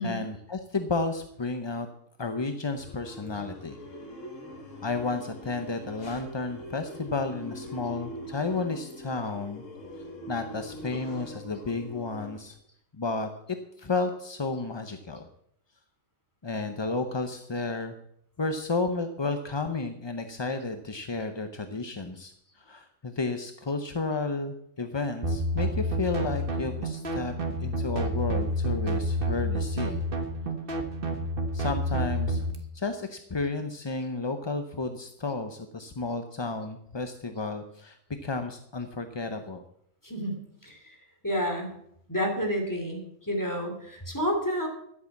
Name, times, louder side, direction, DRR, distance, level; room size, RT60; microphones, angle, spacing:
voice 1, 0.0-1.9 2.2-3.8 4.8-9.6 10.3-12.6 13.0-15.3 16.4-17.9 18.4-27.3 27.6-30.0 31.5-32.5 32.7-39.6, left 3 dB, 30° left, 7 dB, 0.5 m, -32 dB
sound 1, 2.8-12.4, left 1 dB, 70° left, 2.1 m, -43 dB
sound 2, 25.2-32.5, right 1 dB, 45° right, 1.6 m, -29 dB
voice 2, 40.0-41.0 41.2-41.7 42.1-44.7, equal, 15° left, 2 dB, 2.9 m, -30 dB
12.0 x 8.4 x 7.2 m, 0.72 s
omnidirectional pair, 1.4 m